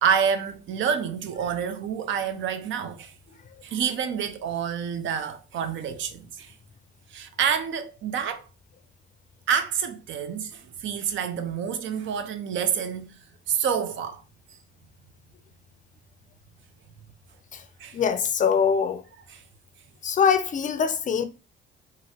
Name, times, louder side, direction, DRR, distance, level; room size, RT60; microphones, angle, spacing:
voice 1, 0.0-3.1 3.6-6.5 7.1-8.5 9.5-13.2 13.5-14.2 17.8-18.0, right 7 dB, 75° right, 0.5 m, -28 dB
voice 2, 17.9-19.0 20.0-21.2, left 7 dB, 40° left, 0.4 m, -23 dB
2.9 x 2.4 x 2.7 m
cardioid pair, 90°, 20 cm